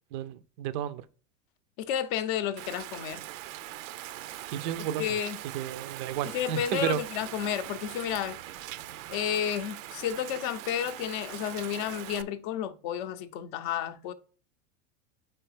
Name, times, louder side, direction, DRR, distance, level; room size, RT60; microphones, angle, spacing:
voice 1, 0.1-1.0 4.5-5.0 5.4-7.0, right 10 dB, 40° right, 0.4 m, -32 dB
voice 2, 1.8-3.3 5.0-5.4 6.2-8.4 9.1-14.1, left 9 dB, 40° left, 0.6 m, -31 dB
Rain, 2.6-12.2, right 14 dB, 90° right, 0.6 m, -41 dB
4.7 x 4.4 x 4.8 m
supercardioid pair, 160°, 38 cm